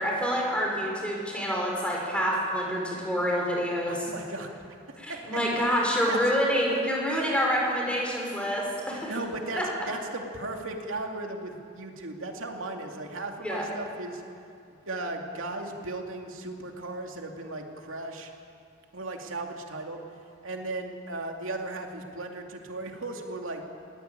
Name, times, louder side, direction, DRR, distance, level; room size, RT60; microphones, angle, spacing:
voice 1, 0.0-4.0 5.0-9.1 9.6-9.7 13.4-13.7, equal, 5° left, -2 dB, 5.2 m, -27 dB
voice 2, 3.9-4.5 5.1-5.4 6.1-6.2 9.1-14.2 14.9-18.3 18.9-20.0 20.4-23.6, right 2 dB, 70° right, 2 dB, 2.7 m, -36 dB
22.5 x 18.0 x 9.2 m, 2.5 s
head